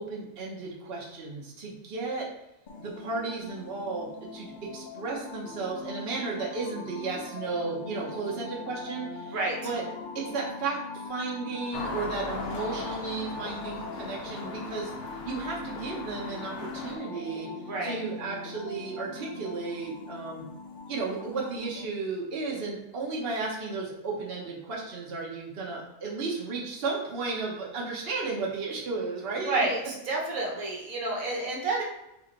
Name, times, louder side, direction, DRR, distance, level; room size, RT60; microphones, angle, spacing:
voice 1, 0.0-2.3 2.8-9.4 9.6-9.8 10.1-15.0 15.2-17.5 17.8-20.4 20.9-29.6, right 4 dB, 50° right, -3 dB, 1.1 m, -34 dB
sound 1, 2.7-21.9, left 4 dB, 60° left, 0.5 m, -42 dB
sound 2, 11.7-17.0, left 3 dB, 85° left, 1.2 m, -39 dB
voice 2, 17.7-18.0 29.4-31.8, right 2 dB, 75° right, -2 dB, 1.4 m, -29 dB
3.7 x 3.2 x 3.9 m, 0.89 s
omnidirectional pair, 1.5 m